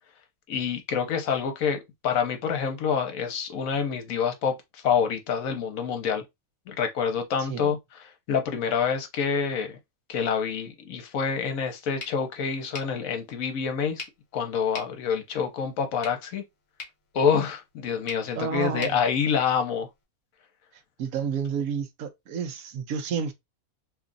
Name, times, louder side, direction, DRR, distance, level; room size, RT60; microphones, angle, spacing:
voice 1, 0.5-4.6 4.8-6.2 6.7-9.8 10.1-14.0 14.3-16.4 17.1-19.9, left 6 dB, 70° left, 1.1 m, -27 dB
sound 1, 12.0-20.0, left 4 dB, 40° left, 1.1 m, -45 dB
voice 2, 18.3-19.0 21.0-23.3, right 6 dB, 70° right, 1.1 m, -30 dB
3.0 x 2.4 x 3.8 m
omnidirectional pair, 1.6 m